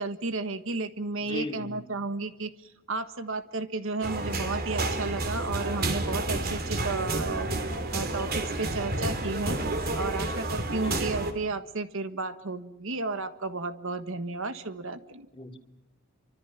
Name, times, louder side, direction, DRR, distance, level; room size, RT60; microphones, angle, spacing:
voice 1, 0.0-7.5 7.9-9.6 10.0-15.3, right 3 dB, 65° right, 10 dB, 1.5 m, -33 dB
voice 2, 1.2-1.8 10.8-11.1 15.3-15.6, left 2 dB, 25° left, 4 dB, 2.6 m, -37 dB
sound 1, 4.0-11.3, right 2 dB, 45° right, 3.1 m, -30 dB
28.5 x 25.5 x 5.9 m, 0.91 s
head